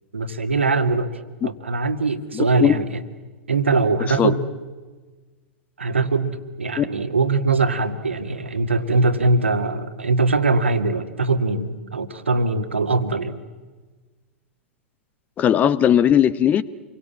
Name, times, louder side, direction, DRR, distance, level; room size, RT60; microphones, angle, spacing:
voice 1, 0.1-1.1 1.4-3.0 3.5-4.5 5.8-13.4, right 3 dB, 75° right, 8 dB, 2.0 m, -21 dB
voice 2, 2.3-2.8 4.2-4.3 6.8-6.9 15.4-16.6, left 9 dB, 25° left, 18 dB, 0.9 m, -18 dB
28.0 x 23.5 x 8.5 m, 1.3 s
figure-of-eight pair, 100°, 6 cm